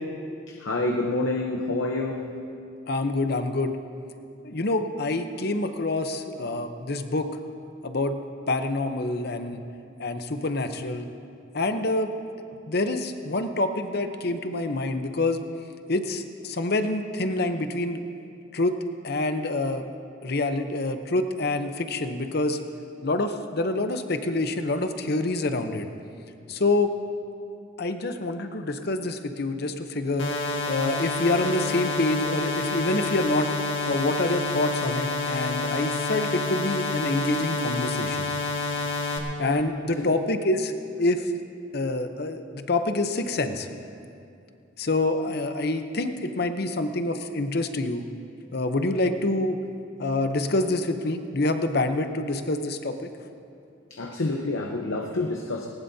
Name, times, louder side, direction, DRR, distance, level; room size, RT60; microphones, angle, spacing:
voice 1, 0.5-2.3 40.0-40.1 53.9-55.7, left 2 dB, 85° left, 2 dB, 0.9 m, -28 dB
voice 2, 2.9-3.8 4.4-7.3 7.8-8.2 8.5-9.6 10.0-11.1 11.5-12.1 12.7-15.4 15.9-18.0 18.5-18.8 19.0-19.8 20.2-22.6 23.0-25.9 26.5-26.9 27.8-30.3 30.7-33.5 33.9-38.3 39.4-40.7 41.0-41.3 41.7-43.7 44.8-48.0 48.5-49.6 50.0-53.1, left 2 dB, 55° left, 8 dB, 0.8 m, -26 dB
sound 1, 30.2-39.2, left 3 dB, 70° left, 1.7 m, -28 dB
19.0 x 19.0 x 2.8 m, 2.5 s
head